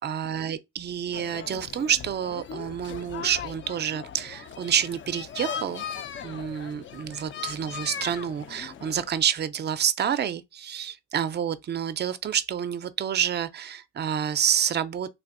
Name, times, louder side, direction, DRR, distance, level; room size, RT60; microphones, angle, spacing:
voice 1, 0.0-5.9 6.2-15.1, right 9 dB, 35° right, 0.4 m, -28 dB
sound 1, 1.1-9.1, left 8 dB, 40° left, 0.4 m, -39 dB
3.6 x 2.5 x 2.4 m
cardioid pair, 90°, 30 cm